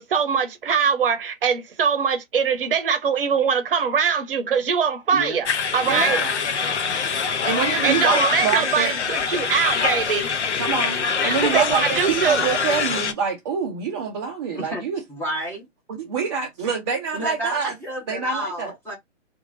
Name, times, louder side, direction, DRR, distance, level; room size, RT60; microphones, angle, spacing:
voice 1, 0.0-5.5 5.7-6.2 7.8-10.3 11.2-12.5, right 6 dB, 50° right, 0.8 m, -22 dB
voice 2, 5.1-5.4 5.9-6.1 14.6-14.8 15.1-15.6 17.1-19.0, equal, 5° left, 1.0 m, -30 dB
sound 1, 5.4-13.1, left 5 dB, 65° left, 0.7 m, -24 dB
voice 3, 5.8-6.3 7.4-8.9 10.6-15.0 15.9-17.7 18.1-18.7, right 6 dB, 25° right, 0.5 m, -26 dB
2.9 x 2.5 x 2.5 m
figure-of-eight pair, 125°, 36 cm